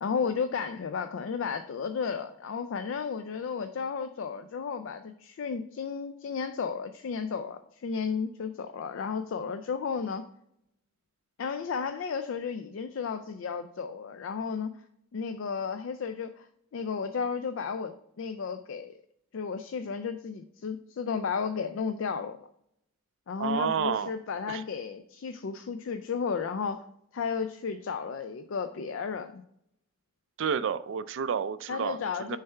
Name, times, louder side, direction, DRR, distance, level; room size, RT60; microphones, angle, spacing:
voice 1, 0.0-10.2 11.4-14.7 15.1-16.5 16.7-18.9 19.3-22.4 23.3-26.9 27.1-29.4 31.7-32.4, left 5 dB, 65° left, 0.4 m, -33 dB
voice 2, 23.4-24.1 24.5-24.6 30.4-32.0 32.3-32.4, right 7 dB, 65° right, 0.4 m, -30 dB
6.5 x 3.4 x 4.4 m
head